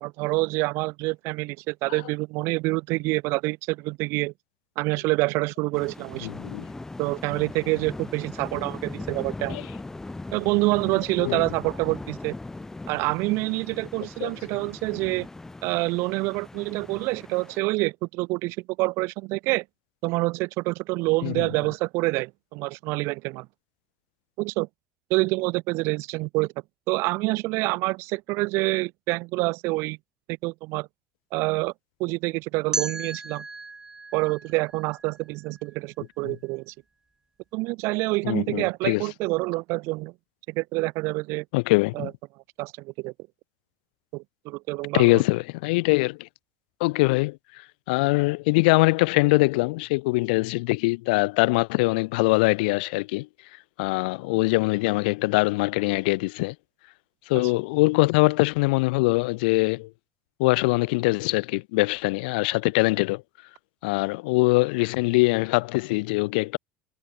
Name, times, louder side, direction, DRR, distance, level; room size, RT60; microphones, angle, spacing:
voice 1, 0.0-4.3 4.8-6.3 7.0-9.6 10.3-12.3 12.9-15.3 15.6-19.6 20.0-23.5 24.4-24.7 25.1-26.5 26.9-30.0 30.4-30.9 31.3-31.7 32.0-33.4 34.1-36.7 37.5-40.1 40.5-41.4 41.9-42.1 42.6-43.1 44.1-45.2 57.3-57.5, right 24 dB, 65° right, 1.3 m, -27 dB
sound 1, 5.7-17.6, left 2 dB, 10° left, 2.4 m, -39 dB
voice 2, 6.2-6.7 9.5-9.7 11.2-11.4 14.2-14.3 21.2-21.5 36.2-36.3 38.2-39.0 41.5-42.1 44.9-46.3 46.8-47.4 47.9-53.3 53.8-56.5 57.3-59.9 60.4-63.2 63.8-66.6, left 25 dB, 85° left, 0.3 m, -23 dB
sound 2, 32.7-35.7, right 3 dB, 10° right, 1.0 m, -35 dB
supercardioid pair, 130°, 5 cm